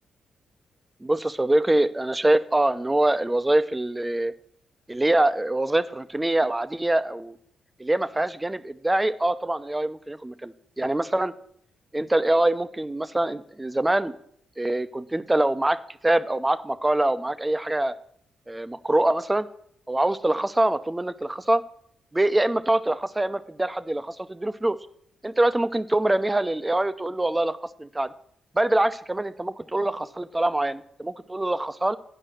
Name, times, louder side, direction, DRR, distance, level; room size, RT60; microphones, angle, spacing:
voice 1, 1.0-4.3 4.9-7.4 7.8-11.3 11.9-14.1 14.6-15.8 16.0-18.0 18.5-19.5 19.9-21.6 22.1-24.8 25.2-28.1 28.5-32.0, right 1 dB, 15° right, 13 dB, 0.6 m, -24 dB
9.9 x 5.4 x 7.7 m, 0.66 s
cardioid pair, 70°, 0 cm